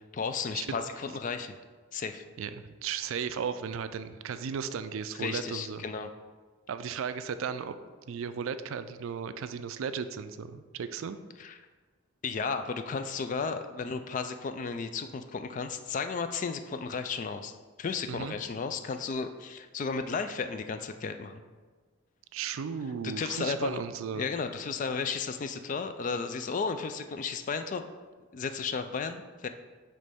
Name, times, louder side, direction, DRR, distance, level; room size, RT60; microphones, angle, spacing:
voice 1, 0.1-1.5 1.9-2.2 5.1-6.1 11.4-11.6 12.2-17.5 17.8-21.4 23.2-23.8 24.1-27.8 28.3-29.5, left 5 dB, 35° left, 8 dB, 0.3 m, -34 dB
voice 2, 2.4-5.8 6.7-7.8 8.1-11.2 18.1-18.4 22.3-24.3, right 6 dB, 70° right, 11 dB, 0.3 m, -35 dB
9.1 x 3.2 x 3.5 m, 1.4 s
head